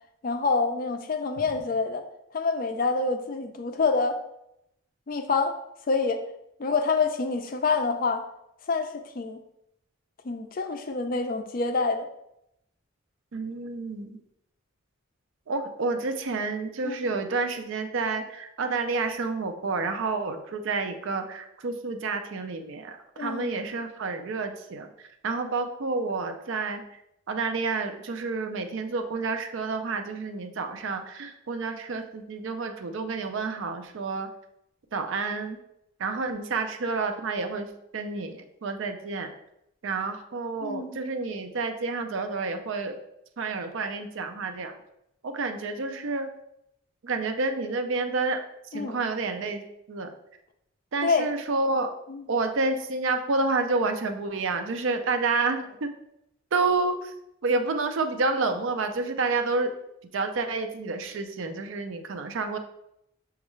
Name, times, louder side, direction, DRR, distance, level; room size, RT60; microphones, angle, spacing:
voice 1, 0.2-2.0 2.3-4.2 5.1-5.6 5.9-6.2 6.6-8.2 8.7-9.4 10.2-12.1 16.8-17.1 23.2-23.5 40.6-41.0 48.7-49.0 51.0-51.3 52.1-52.3, left 4 dB, 40° left, 7 dB, 0.4 m, -27 dB
voice 2, 13.3-14.2 15.5-24.9 25.2-26.8 27.3-34.3 34.9-35.6 36.0-37.7 37.9-39.3 39.8-43.0 43.4-44.7 45.2-46.3 47.0-48.4 48.7-49.6 49.9-50.1 50.9-51.9 52.3-55.9 56.5-57.1 57.4-59.7 60.1-62.6, right 3 dB, 70° right, 6 dB, 0.5 m, -29 dB
6.2 x 2.4 x 3.1 m, 0.81 s
head